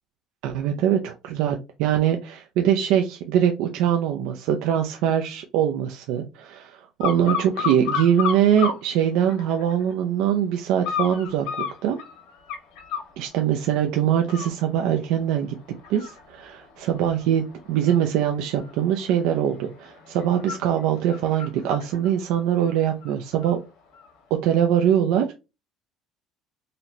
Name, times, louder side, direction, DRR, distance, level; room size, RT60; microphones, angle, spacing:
voice 1, 0.4-11.5 11.8-12.0 13.2-15.6 15.9-23.6 24.4-25.3, right 9 dB, 70° right, 4 dB, 0.3 m, -23 dB
sound 1, 7.0-8.8 9.3-9.9 10.8-13.1 13.6-13.9 14.2-23.5 23.9-24.1, left 7 dB, 80° left, 1.3 m, -33 dB
4.0 x 2.0 x 2.8 m, 0.28 s
cardioid pair, 175°, 0 cm